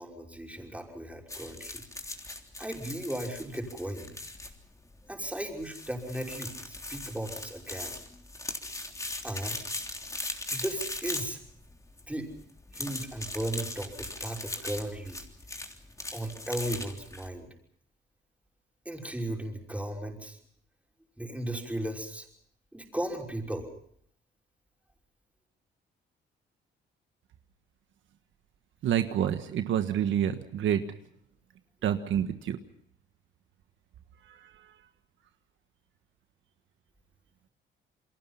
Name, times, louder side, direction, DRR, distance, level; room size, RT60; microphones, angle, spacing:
voice 1, 0.0-1.8 2.6-4.1 5.1-7.9 9.2-9.6 10.5-11.4 12.1-12.3 12.7-15.2 16.1-17.5 18.8-20.4 21.2-22.3 22.7-23.7, right 1 dB, 5° right, 1 dB, 5.8 m, -36 dB
sound 1, 1.3-17.3, left 2 dB, 15° left, 3.4 m, -40 dB
voice 2, 28.8-30.8 31.8-32.6 34.3-34.5, right 10 dB, 75° right, 8 dB, 1.5 m, -28 dB
29.5 x 22.5 x 5.7 m, 0.66 s
cardioid pair, 90°, 20 cm